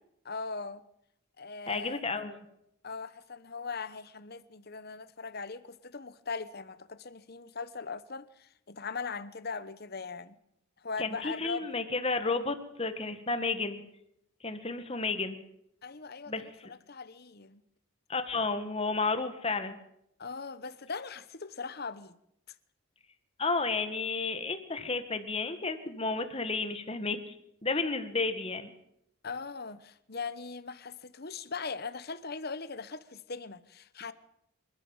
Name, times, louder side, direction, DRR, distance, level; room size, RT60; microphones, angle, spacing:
voice 1, 0.2-0.8 1.4-2.0 2.8-10.3 10.8-11.7 15.8-17.6 20.2-22.1 22.5-22.6 29.2-34.1, left 4 dB, 45° left, 1.0 m, -40 dB
voice 2, 1.7-2.4 11.0-13.8 14.4-15.4 16.3-16.4 18.1-19.8 23.4-27.3 27.6-28.7, left 3 dB, 25° left, 1.8 m, -32 dB
27.5 x 13.0 x 7.3 m
head